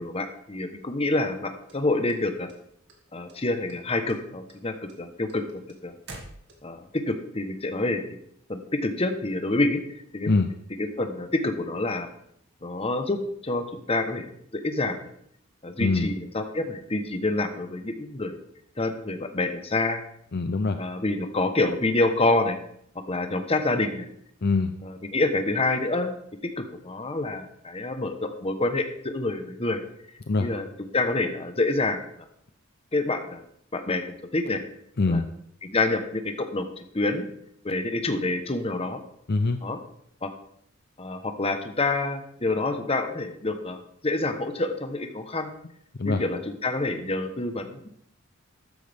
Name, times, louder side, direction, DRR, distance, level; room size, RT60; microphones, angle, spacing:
voice 1, 0.0-2.5 3.1-5.4 5.8-5.9 6.6-8.0 8.5-9.8 10.1-10.4 10.8-12.1 12.6-15.1 15.6-18.4 18.8-20.0 20.8-22.6 23.1-24.1 24.8-26.1 26.6-29.8 30.4-30.6 30.9-32.3 32.9-33.4 33.7-34.6 35.1-35.2 35.6-37.3 37.6-39.0 39.6-39.8 40.2-40.3 41.0-45.5 46.0-47.9, left 2 dB, 30° left, 7 dB, 1.1 m, -27 dB
sound 1, 1.7-2.9 3.3-3.8 4.1-6.9, right 2 dB, 55° right, 2.3 m, -46 dB
voice 2, 20.3-20.8 24.4-24.7 30.3-30.5 35.0-35.3 39.3-39.6 46.0-46.2, left 3 dB, 50° left, 8 dB, 0.6 m, -23 dB
13.0 x 10.0 x 3.6 m, 0.70 s
head